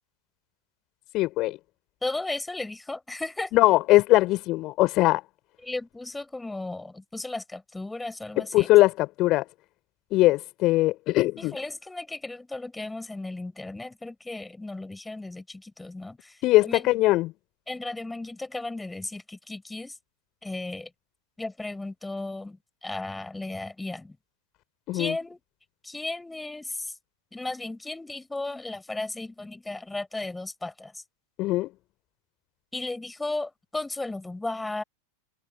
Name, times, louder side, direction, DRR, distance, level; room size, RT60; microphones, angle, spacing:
voice 1, 1.1-1.6 3.5-5.2 8.5-9.4 10.1-11.5 16.4-17.3 24.9-25.1 31.4-31.7, left 18 dB, 40° left, 4.2 m, -21 dB
voice 2, 2.0-3.5 5.6-8.7 11.4-16.9 17.7-20.0 20.4-20.9 21.4-24.2 24.9-25.4 25.8-26.9 27.3-31.0 32.7-34.8, left 2 dB, 5° left, 5.3 m, -35 dB
figure-of-eight pair, 90°, 0 cm